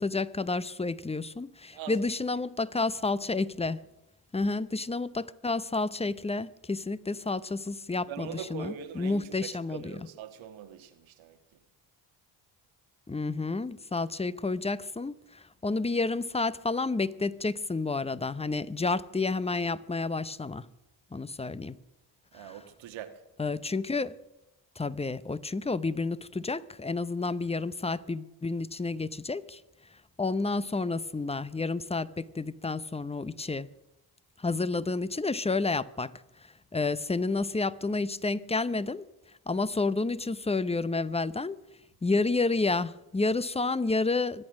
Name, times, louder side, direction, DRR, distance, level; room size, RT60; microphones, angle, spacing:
voice 1, 0.0-3.8 4.3-10.0 13.1-20.7 21.1-21.8 22.4-22.6 23.4-24.1 24.8-29.6 30.2-33.7 34.4-36.1 36.7-39.0 39.5-41.6 42.0-44.5, left 3 dB, 15° left, 0.7 m, -30 dB
voice 2, 8.1-11.6 22.3-23.2, right 8 dB, 80° right, 1.6 m, -42 dB
24.5 x 8.7 x 6.3 m
supercardioid pair, 65°, 46 cm